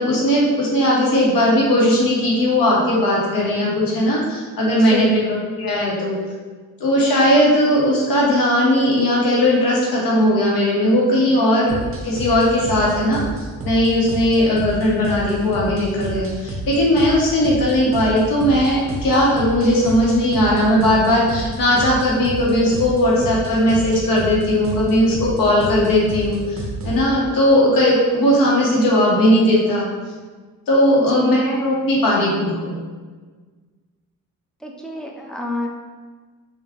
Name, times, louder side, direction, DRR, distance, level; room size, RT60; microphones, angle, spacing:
voice 1, 0.0-5.2 5.6-6.1 6.8-11.8 12.0-13.2 13.6-26.6 26.8-29.8 30.7-32.7, left 1 dB, 80° left, -4 dB, 1.2 m, -17 dB
voice 2, 4.7-5.2 30.9-31.4 34.6-35.7, left 1 dB, ahead, 0 dB, 0.5 m, -27 dB
sound 1, 11.7-27.0, right 2 dB, 40° right, 0.7 m, -30 dB
3.6 x 2.5 x 3.5 m, 1.4 s
cardioid pair, 80°, 34 cm